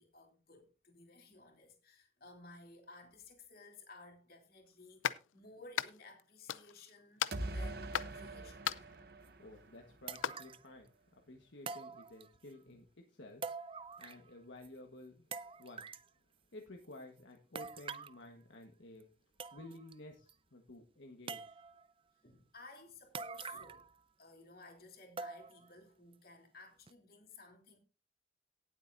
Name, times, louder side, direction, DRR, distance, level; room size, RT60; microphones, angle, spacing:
voice 1, 0.0-8.6 11.3-11.4 12.6-12.8 22.2-27.8, left 3 dB, 50° left, 3.0 m, -57 dB
sound 1, 5.0-5.2 5.8-6.2 6.5-6.9 7.2-8.2 8.6-9.0 10.1-10.3, left 9 dB, 90° left, 0.6 m, -36 dB
sound 2, 7.3-10.2, right 1 dB, 50° right, 0.9 m, -43 dB
sound 3, 9.3-9.4 10.1-10.7 11.7-12.5 13.4-14.3 14.6-14.7 15.3-16.1 17.6-18.2 19.0-19.1 19.4-19.9 20.3-20.4 21.3-21.9 23.1-23.9 24.2-24.3 25.2-25.7 26.1-26.2 26.9-27.0, right 5 dB, 25° right, 0.4 m, -45 dB
voice 2, 9.4-13.5 13.7-15.9 16.5-19.1 19.5-21.6, left 1 dB, 70° left, 1.4 m, -53 dB
18.0 x 8.0 x 2.6 m
head